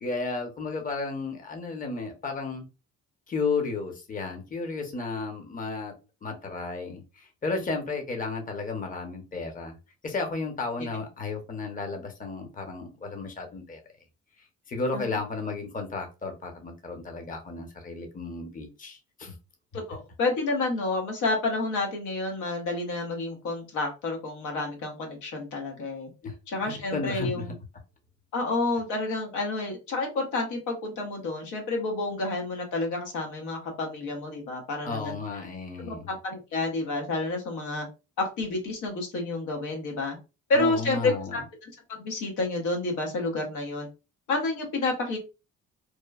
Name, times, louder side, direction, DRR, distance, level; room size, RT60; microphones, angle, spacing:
voice 1, 0.0-2.6 3.3-5.9 6.2-9.7 10.0-13.8 14.7-19.3 26.2-26.4 26.6-27.4 34.8-36.1 40.5-41.4, left 3 dB, 25° left, 3 dB, 0.7 m, -33 dB
voice 2, 19.7-26.1 26.5-27.5 28.3-35.1 35.8-37.9 38.2-40.2 40.5-41.7 42.0-43.9 44.3-45.2, left 2 dB, 85° left, 2 dB, 1.0 m, -29 dB
3.0 x 2.1 x 2.3 m, 0.29 s
cardioid pair, 90°, 30 cm